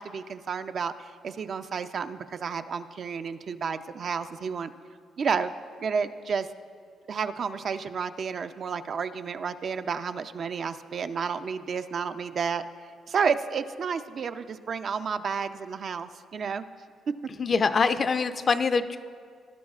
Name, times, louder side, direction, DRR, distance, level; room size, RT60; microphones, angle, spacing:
voice 1, 0.0-4.7 5.2-5.5 5.8-6.5 7.1-12.6 13.1-16.6, right 6 dB, 55° right, 9 dB, 0.5 m, -31 dB
voice 2, 17.4-19.0, left 5 dB, 40° left, 10 dB, 0.5 m, -24 dB
19.5 x 11.0 x 2.4 m, 2.1 s
cardioid pair, 90°, 0 cm